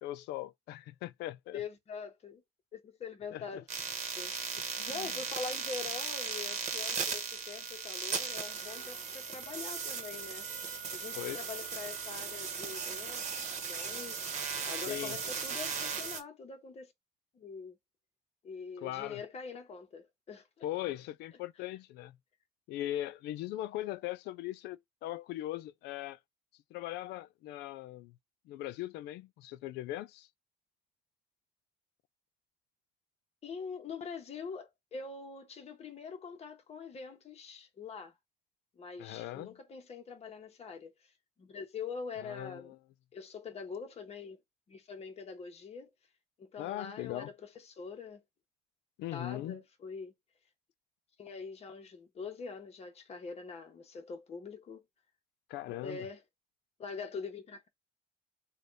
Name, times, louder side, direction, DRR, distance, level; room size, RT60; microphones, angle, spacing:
voice 1, 0.0-1.6 3.3-3.6 4.8-5.1 11.2-11.5 14.9-15.2 18.8-19.2 20.6-22.2 22.7-26.2 26.7-28.2 28.5-30.3 39.0-39.6 42.2-42.8 46.6-47.3 49.0-49.6 55.5-56.1, left 14 dB, 80° left, 0.4 m, -40 dB
voice 2, 1.5-2.4 2.7-3.7 4.1-10.5 10.9-13.2 13.7-14.2 14.7-16.9 17.3-17.8 18.4-20.7 33.4-38.1 38.8-40.9 41.4-42.7 43.1-44.4 44.7-45.9 46.4-48.2 49.1-50.1 51.2-54.8 55.7-56.2 56.8-57.7, left 5 dB, 40° left, 1.0 m, -44 dB
sound 1, 3.7-16.2, right 5 dB, 45° right, 1.0 m, -37 dB
3.3 x 2.3 x 3.9 m
cardioid pair, 110°, 17 cm